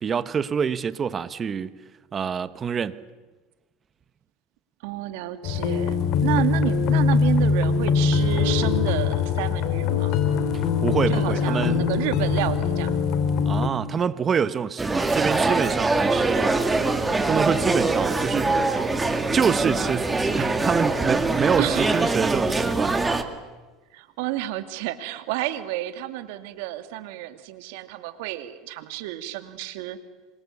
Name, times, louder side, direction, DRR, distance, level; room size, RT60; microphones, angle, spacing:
voice 1, 0.0-1.7 2.1-3.0 10.5-11.9 13.5-16.6 17.3-18.6 19.3-23.0, right 6 dB, 30° right, 1.2 m, -26 dB
voice 2, 4.8-10.2 11.1-13.0 21.6-21.9 23.9-30.0, right 14 dB, 75° right, 2.4 m, -30 dB
sound 1, 5.4-13.7, left 5 dB, 55° left, 3.1 m, -22 dB
sound 2, 14.8-23.2, right 3 dB, 10° right, 2.2 m, -23 dB
27.0 x 24.0 x 8.5 m
supercardioid pair, 115°, 0 cm